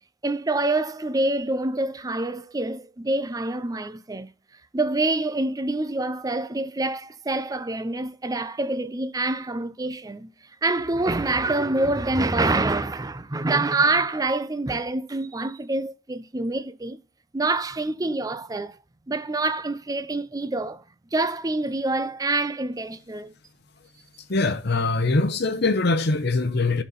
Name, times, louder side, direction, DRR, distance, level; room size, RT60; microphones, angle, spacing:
voice 1, 0.2-4.3 4.7-10.3 10.6-17.0 17.3-18.8 19.1-20.8 21.1-23.3, right 2 dB, 20° right, 0.5 m, -26 dB
voice 2, 24.3-26.8, left 3 dB, 55° left, 0.8 m, -22 dB
12.5 x 4.3 x 4.0 m
head